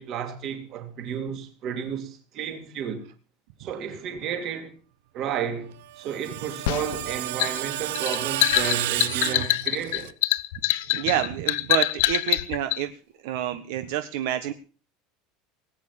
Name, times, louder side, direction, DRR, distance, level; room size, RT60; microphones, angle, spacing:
voice 1, 0.0-3.0 3.6-4.8 5.1-10.1, right 8 dB, 35° right, 2.6 m, -32 dB
Screech, 5.8-10.1, right 15 dB, 85° right, 0.8 m, -31 dB
sound 1, 6.7-12.8, left 18 dB, 65° left, 0.8 m, -24 dB
voice 2, 10.9-12.9 13.2-14.5, right 11 dB, 60° right, 1.3 m, -28 dB
19.0 x 9.0 x 7.1 m
cardioid pair, 180°, 0 cm